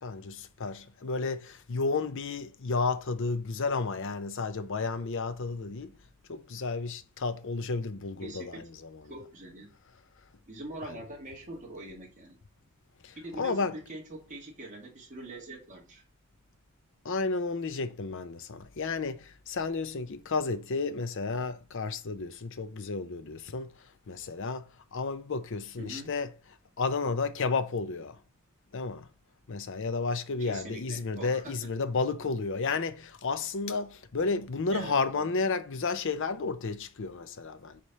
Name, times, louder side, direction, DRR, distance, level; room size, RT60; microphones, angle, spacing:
voice 1, 0.0-5.9 6.3-9.0 10.8-11.0 13.0-13.8 17.0-26.3 26.8-28.2 28.7-29.1 29.5-37.8, left 4 dB, 60° left, 0.7 m, -32 dB
voice 2, 8.2-8.6 9.1-9.7 10.5-12.4 13.2-16.0 25.8-26.1 30.4-31.5 34.7-35.3, right 2 dB, 35° right, 2.1 m, -43 dB
5.0 x 4.4 x 5.5 m
head